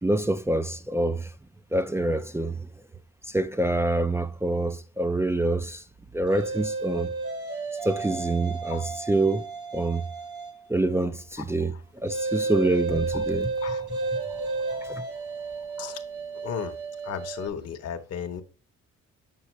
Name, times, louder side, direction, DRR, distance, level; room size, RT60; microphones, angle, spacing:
voice 1, 0.0-1.3 1.7-2.7 3.3-5.8 6.1-7.1 7.8-10.0 10.7-13.5 14.7-15.0, right 2 dB, 10° right, 0.3 m, -26 dB
sound 1, 6.3-10.7 12.1-17.5, right 3 dB, 80° right, 1.8 m, -32 dB
voice 2, 16.4-16.8 17.0-18.4, left 8 dB, 55° left, 0.8 m, -35 dB
7.3 x 5.4 x 3.0 m
cardioid pair, 90°, 30 cm